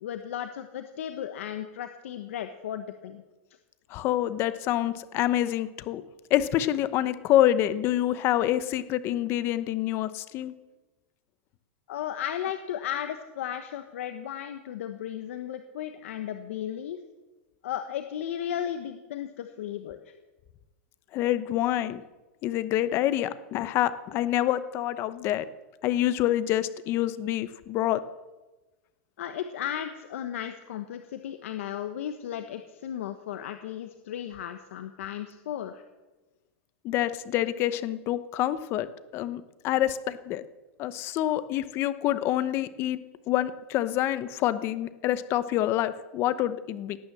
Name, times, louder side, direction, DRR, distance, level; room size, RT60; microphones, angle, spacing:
voice 1, 0.0-3.2 11.9-17.0 17.6-20.1 29.2-35.8, left 10 dB, 75° left, 8 dB, 1.1 m, -35 dB
voice 2, 3.9-6.0 6.3-10.5 21.1-22.0 22.4-25.5 25.8-28.0 36.8-38.9 39.1-40.4 40.8-43.0 43.3-47.0, left 13 dB, 35° left, 14 dB, 0.9 m, -27 dB
17.5 x 9.5 x 7.4 m, 1.2 s
supercardioid pair, 155°, 7 cm